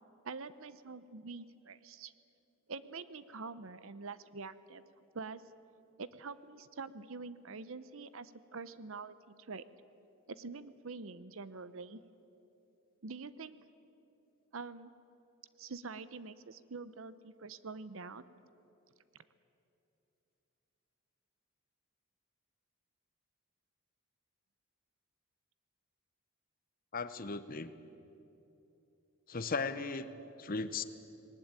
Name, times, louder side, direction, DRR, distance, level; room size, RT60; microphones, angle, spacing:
voice 1, 0.2-2.1 2.7-4.8 5.1-5.4 6.0-9.6 10.3-12.0 13.0-13.6 14.5-14.9 15.6-18.2, right 4 dB, 60° right, 15 dB, 0.7 m, -45 dB
voice 2, 26.9-27.7 29.3-30.1 30.4-30.8, left 4 dB, 40° left, 12 dB, 0.8 m, -36 dB
20.0 x 19.0 x 9.0 m, 3.0 s
head